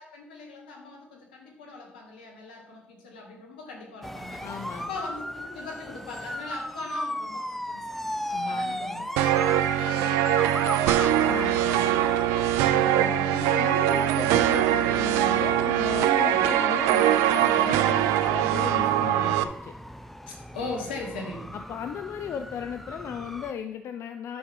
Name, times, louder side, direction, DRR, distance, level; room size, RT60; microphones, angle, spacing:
voice 1, 0.0-4.4 4.7-8.0 8.3-9.1 9.4-11.0 11.4-12.5 12.8-13.4 16.0-16.4 20.3-21.5, left 3 dB, 90° left, 1 dB, 1.4 m, -40 dB
sound 1, 4.0-23.5, equal, 5° left, 0.7 m, -37 dB
voice 2, 4.4-4.9 8.3-9.3 11.3-12.0 12.7-19.7 21.5-24.4, left 8 dB, 65° left, 7 dB, 0.5 m, -36 dB
sound 2, 9.2-19.4, right 11 dB, 80° right, 0.4 m, -22 dB
9.3 x 6.2 x 3.7 m, 0.83 s
hypercardioid pair, 40°, 5 cm